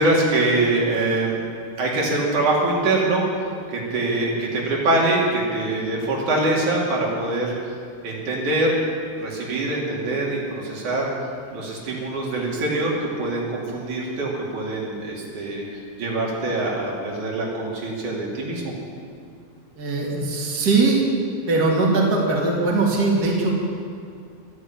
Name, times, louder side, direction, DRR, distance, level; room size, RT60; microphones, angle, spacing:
voice 1, 0.0-1.3 1.8-3.2 3.7-7.7 8.0-8.8 9.2-11.1 11.5-15.6 16.0-18.7, right 2 dB, 80° right, -3 dB, 4.1 m, -23 dB
voice 2, 19.8-21.0 21.5-23.6, right 3 dB, 35° right, -2 dB, 2.7 m, -20 dB
13.0 x 11.0 x 8.6 m, 2.3 s
omnidirectional pair, 3.4 m